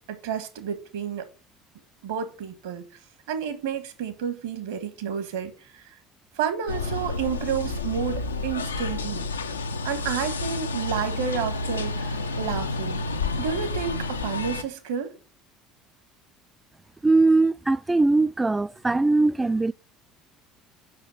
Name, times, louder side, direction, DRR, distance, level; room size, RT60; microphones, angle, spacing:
voice 1, 0.1-1.2 2.0-2.9 3.3-5.9 6.3-9.3 9.8-13.0 13.4-15.1, right 8 dB, 65° right, 1.6 m, -30 dB
sound 1, 6.7-14.6, left 3 dB, 85° left, 0.7 m, -30 dB
voice 2, 17.0-19.7, right 3 dB, 15° right, 0.4 m, -21 dB
7.8 x 6.2 x 7.5 m
figure-of-eight pair, 60°, 0 cm